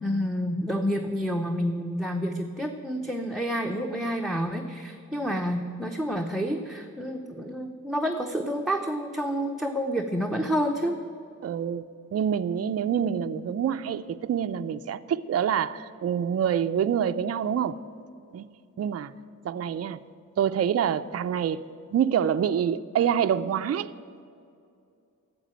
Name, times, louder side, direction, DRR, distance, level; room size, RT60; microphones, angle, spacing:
voice 1, 0.0-11.0, equal, ahead, 2 dB, 0.7 m, -29 dB
voice 2, 11.4-11.8 12.1-17.8 18.3-18.5 18.8-19.1 19.4-20.0 20.4-21.6 21.9-23.9, right 8 dB, 50° right, 10 dB, 0.4 m, -26 dB
12.5 x 7.5 x 8.9 m, 2.5 s
wide cardioid pair, 105°, 32 cm